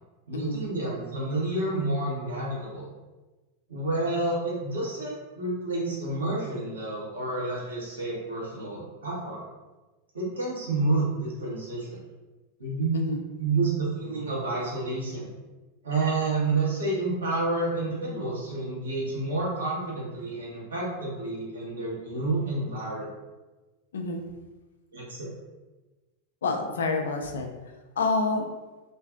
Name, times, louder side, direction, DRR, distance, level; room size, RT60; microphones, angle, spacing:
voice 1, 0.3-2.9 3.7-9.4 10.1-12.0 12.6-13.0 13.4-15.3 15.8-23.1 24.9-25.3, right 2 dB, 70° right, -5 dB, 0.9 m, -29 dB
voice 2, 23.9-24.2 26.4-27.5 28.0-28.4, left 3 dB, 65° left, 4 dB, 0.3 m, -27 dB
2.5 x 2.4 x 2.3 m, 1.2 s
figure-of-eight pair, 90°, 0 cm